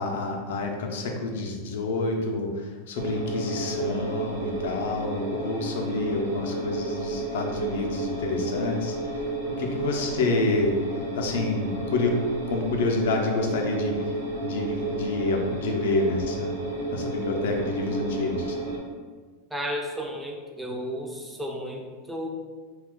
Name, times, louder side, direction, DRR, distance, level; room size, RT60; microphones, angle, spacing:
voice 1, 0.0-9.2 9.6-10.7 11.2-12.2 12.5-14.1 14.4-16.6 16.9-18.6, left 3 dB, 75° left, 2 dB, 0.5 m, -28 dB
sound 1, 2.9-18.8, right 2 dB, 75° right, 0.9 m, -31 dB
voice 2, 19.5-22.3, equal, 5° right, 1 dB, 0.4 m, -33 dB
2.4 x 2.3 x 3.6 m, 1.4 s
hypercardioid pair, 120°, 0 cm